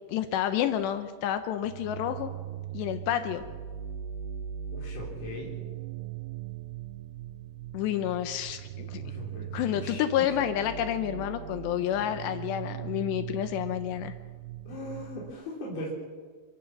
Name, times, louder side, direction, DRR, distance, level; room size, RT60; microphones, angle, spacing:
voice 1, 0.1-2.3 2.7-3.4 7.7-9.0 9.5-14.1, left 11 dB, 80° left, 9 dB, 2.9 m, -29 dB
sound 1, 1.6-15.3, right 10 dB, 80° right, 2.3 m, -40 dB
voice 2, 4.7-5.5 9.0-10.0 10.3-10.4 14.7-15.9, left 1 dB, 35° left, -5 dB, 4.8 m, -39 dB
30.0 x 15.5 x 5.9 m, 1.5 s
omnidirectional pair, 5.2 m